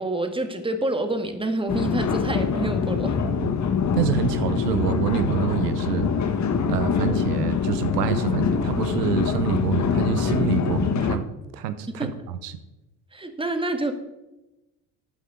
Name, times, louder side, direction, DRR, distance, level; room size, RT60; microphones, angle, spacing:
voice 1, 0.0-3.2 12.0-12.1 13.1-13.9, right 2 dB, 10° right, 6 dB, 1.8 m, -27 dB
sound 1, 1.7-11.2, left 6 dB, 35° left, 1.2 m, -24 dB
voice 2, 3.9-6.1 6.7-11.3 11.5-12.5, right 9 dB, 85° right, 11 dB, 0.8 m, -26 dB
13.0 x 9.1 x 3.7 m, 0.99 s
hypercardioid pair, 55°, 47 cm